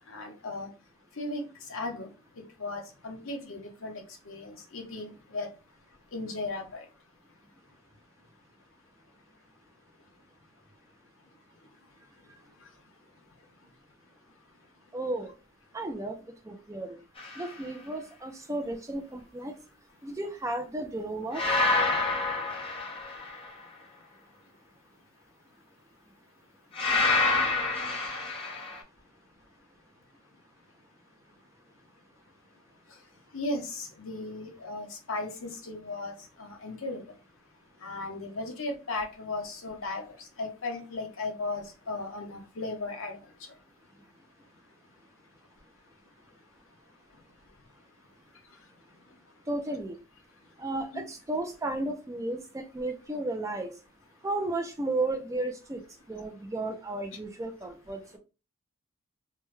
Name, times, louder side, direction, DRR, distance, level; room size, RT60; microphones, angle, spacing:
voice 1, 0.1-0.7 1.2-1.4 1.7-2.1 2.4-5.5 6.1-6.8 33.3-36.1 36.4-37.0 37.8-43.2 50.9-51.0, left 2 dB, 60° left, 3 dB, 0.8 m, -36 dB
voice 2, 14.9-15.3 15.7-16.2 16.5-17.0 17.4-19.5 20.0-21.4 49.5-50.0 50.6-53.7 54.2-55.8 56.1-58.2, right 2 dB, 15° right, 4 dB, 0.3 m, -33 dB
sound 1, 17.2-17.5 21.3-23.5 26.7-28.8, left 3 dB, 25° left, 0.8 m, -27 dB
3.3 x 2.1 x 3.1 m, 0.31 s
head